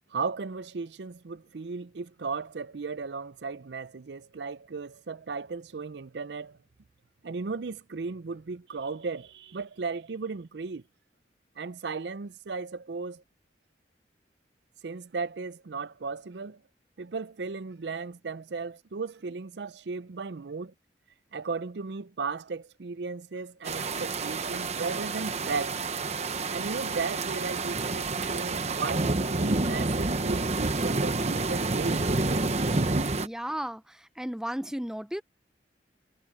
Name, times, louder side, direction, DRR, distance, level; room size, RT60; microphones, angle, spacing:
voice 1, 0.1-6.6 7.2-10.8 11.6-13.2 14.8-16.6 17.0-20.7 21.3-25.8 26.5-32.1, right 4 dB, 65° right, 0.5 m, -36 dB
sound 1, 23.6-33.3, right 3 dB, 35° right, 1.0 m, -29 dB
voice 2, 33.1-35.2, equal, 5° right, 0.6 m, -34 dB
head